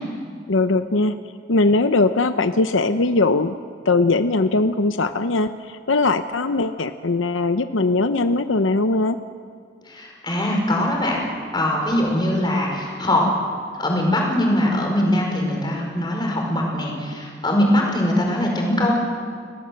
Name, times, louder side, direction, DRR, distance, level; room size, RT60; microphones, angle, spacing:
voice 1, 0.5-1.2 1.5-3.5 3.9-9.2, left 3 dB, 85° left, 10 dB, 0.8 m, -20 dB
voice 2, 9.8-11.2 11.5-13.3 13.7-18.9, left 1 dB, 20° left, 0 dB, 5.0 m, -21 dB
29.5 x 18.0 x 7.7 m, 2.1 s
head